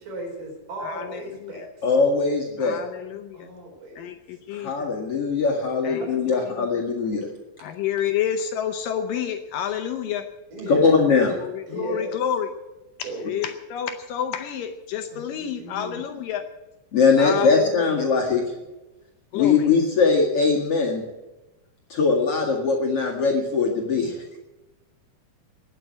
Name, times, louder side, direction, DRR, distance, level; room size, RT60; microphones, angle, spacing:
voice 1, 0.0-1.9 3.3-4.1 6.0-6.5 10.5-11.0 11.7-12.2 13.0-13.3 15.1-16.0 17.5-17.9, right 1 dB, 60° right, 0 dB, 5.7 m, -36 dB
voice 2, 0.8-1.7 2.6-3.5 4.0-4.9 5.8-6.1 6.5-6.8 7.6-10.3 11.4-12.5 13.0-16.5 17.2-18.1 19.3-19.7, left 9 dB, 75° left, 7 dB, 2.3 m, -29 dB
voice 3, 1.8-2.8 4.5-7.3 10.7-11.3 16.9-18.4 19.3-21.0 21.9-24.4, left 4 dB, 45° left, -2 dB, 2.4 m, -21 dB
19.0 x 7.6 x 9.4 m, 1.0 s
omnidirectional pair, 4.3 m